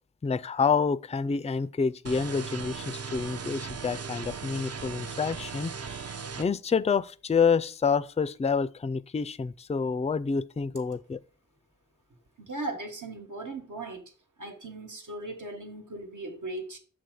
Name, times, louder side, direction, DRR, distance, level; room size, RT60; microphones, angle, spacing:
voice 1, 0.2-11.2, left 5 dB, 20° left, 0.3 m, -28 dB
sound 1, 2.1-6.5, right 5 dB, 55° right, 0.5 m, -38 dB
voice 2, 12.4-14.0 14.4-16.8, right 2 dB, 80° right, 1.3 m, -38 dB
6.9 x 3.7 x 6.4 m
wide cardioid pair, 45°, 30 cm